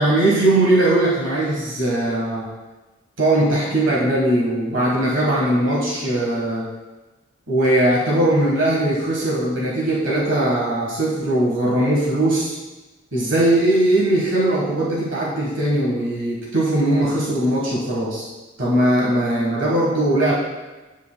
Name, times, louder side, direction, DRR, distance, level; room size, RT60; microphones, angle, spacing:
voice 1, 0.0-2.5 3.2-6.7 7.5-12.5 13.1-18.3 18.6-20.3, right 1 dB, 75° right, -5 dB, 1.4 m, -19 dB
8.1 x 7.5 x 2.2 m, 1.2 s
head